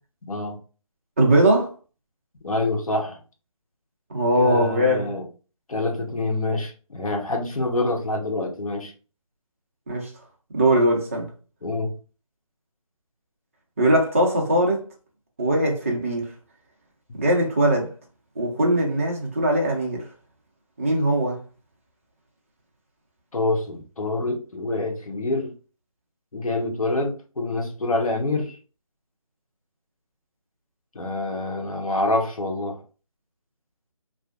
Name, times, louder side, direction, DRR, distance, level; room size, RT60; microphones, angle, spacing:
voice 1, 0.3-0.6 2.4-3.2 4.4-5.2 5.7-8.9 11.6-11.9 17.1-17.2 23.3-25.5 26.3-28.6 30.9-32.8, left 2 dB, 75° left, 0.8 m, -26 dB
voice 2, 1.2-1.7 4.1-5.1 9.9-10.1 10.5-11.3 13.8-14.8 15.4-16.3 17.1-17.9 18.4-20.1 20.8-21.4, right 1 dB, 25° right, 0.4 m, -20 dB
2.5 x 2.0 x 2.4 m
figure-of-eight pair, 160°, 18 cm